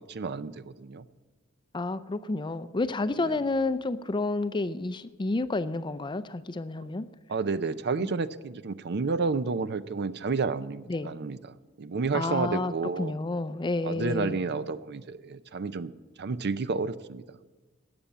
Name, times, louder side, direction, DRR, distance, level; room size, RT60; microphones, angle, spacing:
voice 1, 0.1-1.1 3.2-3.4 7.3-13.1 13.8-15.9 16.2-17.2, right 4 dB, 55° right, 15 dB, 0.6 m, -31 dB
voice 2, 1.7-7.1 8.0-8.1 10.9-11.1 12.1-12.7 13.0-14.4, left 2 dB, 20° left, 14 dB, 0.5 m, -30 dB
17.0 x 7.0 x 9.0 m, 1.2 s
head